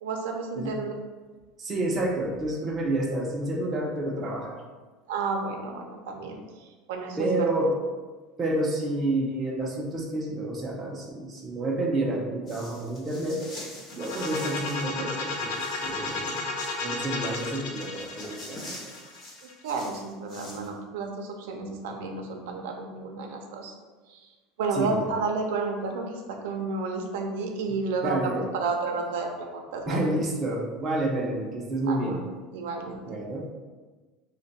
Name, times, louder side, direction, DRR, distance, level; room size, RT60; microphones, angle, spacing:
voice 1, 0.0-0.9 5.1-7.5 19.4-23.7 24.1-30.1 31.9-32.3 32.5-33.2, right 4 dB, 85° right, 2 dB, 0.5 m, -32 dB
voice 2, 1.6-4.6 7.2-7.8 8.4-13.4 13.9-16.5 16.8-18.9 24.7-25.1 28.0-28.5 29.9-32.2 33.1-33.5, right 1 dB, 20° right, -2 dB, 0.5 m, -29 dB
sound 1, 12.5-14.9 15.2-16.8 17.2-20.7, left 1 dB, 25° left, 0.7 m, -45 dB
sound 2, 13.9-19.7, left 3 dB, 80° left, 0.6 m, -33 dB
3.3 x 2.2 x 3.9 m, 1.3 s
cardioid pair, 175°, 0 cm